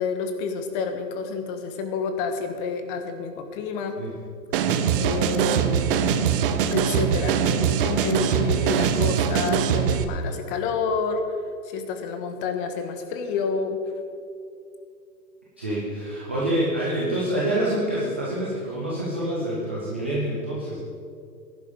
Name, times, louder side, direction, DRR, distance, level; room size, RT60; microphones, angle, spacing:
voice 1, 0.0-4.0 4.9-6.1 6.7-11.4 11.6-13.8, left 5 dB, 30° left, 6 dB, 1.5 m, -29 dB
voice 2, 4.5-4.9 15.6-20.8, right 1 dB, 10° right, -7 dB, 0.3 m, -27 dB
sound 1, 4.5-10.0, right 8 dB, 35° right, 0.8 m, -22 dB
16.5 x 11.0 x 4.9 m, 2.4 s
hypercardioid pair, 135°, 49 cm